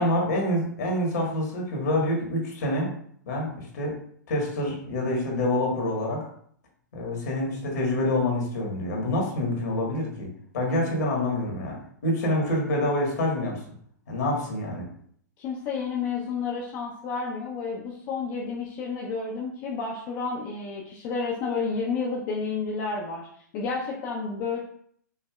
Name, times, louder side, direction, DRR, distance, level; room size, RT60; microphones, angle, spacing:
voice 1, 0.0-2.9 3.2-4.0 4.3-6.3 6.9-11.8 12.0-13.6 14.1-14.9, left 1 dB, 65° left, -1 dB, 1.6 m, -27 dB
voice 2, 15.4-23.3 23.5-24.6, left 4 dB, 40° left, -3 dB, 0.7 m, -30 dB
5.3 x 2.7 x 2.4 m, 0.63 s
hypercardioid pair, 110°, 10 cm